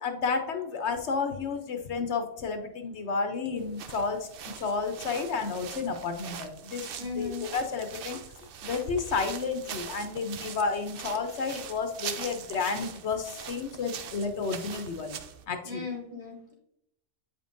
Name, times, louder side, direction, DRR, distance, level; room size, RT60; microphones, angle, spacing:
voice 1, 0.0-4.3 4.6-6.9 7.2-8.2 8.6-15.2 15.5-15.8, left 4 dB, 70° left, 6 dB, 1.0 m, -31 dB
sound 1, 3.6-15.4, right 8 dB, 60° right, 0.7 m, -42 dB
voice 2, 7.0-7.5 15.6-16.5, left 4 dB, 40° right, -6 dB, 2.5 m, -37 dB
8.3 x 5.2 x 2.6 m, 0.75 s
omnidirectional pair, 1.2 m